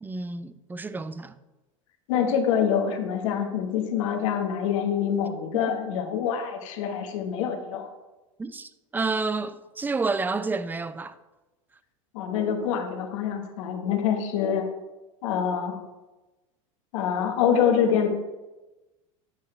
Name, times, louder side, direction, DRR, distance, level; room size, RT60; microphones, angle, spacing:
voice 1, 0.0-1.3 8.4-11.2, right 3 dB, 10° right, 0.4 m, -30 dB
voice 2, 2.1-7.9 12.1-14.7 15.2-15.8 16.9-18.1, left 8 dB, 70° left, 1.1 m, -25 dB
8.4 x 5.6 x 4.4 m
hypercardioid pair, 95°, 17 cm